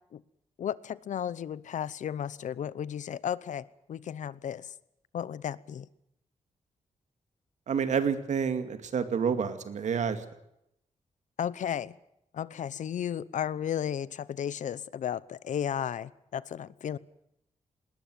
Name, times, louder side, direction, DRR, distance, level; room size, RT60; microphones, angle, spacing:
voice 1, 0.6-4.7 5.1-5.9 11.4-12.0 12.3-17.0, left 9 dB, 80° left, 0.8 m, -34 dB
voice 2, 7.7-10.2, right 6 dB, 75° right, 2.3 m, -29 dB
20.0 x 19.5 x 9.3 m
wide cardioid pair, 155°, 12 cm